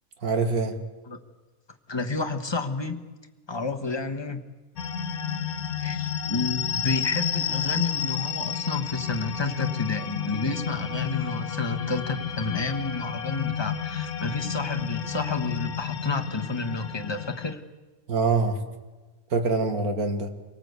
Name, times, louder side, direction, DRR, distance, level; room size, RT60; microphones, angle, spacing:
voice 1, 0.2-0.8 18.1-18.6 19.3-20.3, right 4 dB, 90° right, 7 dB, 2.4 m, -24 dB
voice 2, 1.9-3.0 3.5-4.4 5.8-17.6, left 3 dB, 20° left, 6 dB, 1.3 m, -30 dB
sound 1, 4.8-17.5, left 8 dB, 85° left, 1.5 m, -31 dB
25.0 x 18.5 x 8.2 m, 1.2 s
omnidirectional pair, 1.5 m